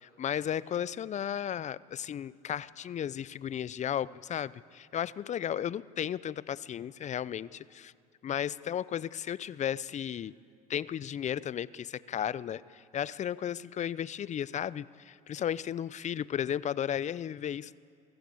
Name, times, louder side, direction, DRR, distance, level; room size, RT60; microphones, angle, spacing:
voice 1, 0.0-7.9 8.2-10.3 10.7-17.8, left 9 dB, 35° left, 20 dB, 0.6 m, -34 dB
23.5 x 14.0 x 8.4 m, 2.4 s
supercardioid pair, 80°, 20 cm